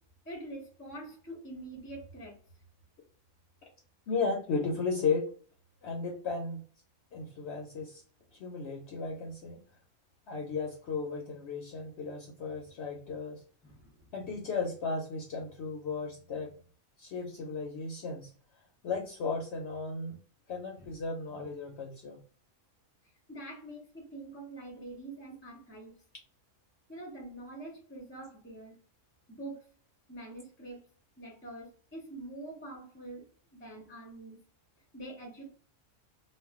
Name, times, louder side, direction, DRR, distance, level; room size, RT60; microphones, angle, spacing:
voice 1, 0.2-2.4 13.6-14.1 20.8-21.0 23.3-25.9 26.9-28.8 29.3-29.6 30.1-30.8 31.2-34.4 34.9-35.5, right 2 dB, 15° left, -1 dB, 0.4 m, -45 dB
voice 2, 4.1-5.3 5.8-6.6 7.1-8.0 8.4-9.6 10.3-13.4 14.1-16.5 17.0-18.3 18.8-20.2 20.5-22.2, left 4 dB, 65° left, 1 dB, 0.7 m, -35 dB
2.3 x 2.1 x 3.5 m, 0.42 s
omnidirectional pair, 1.4 m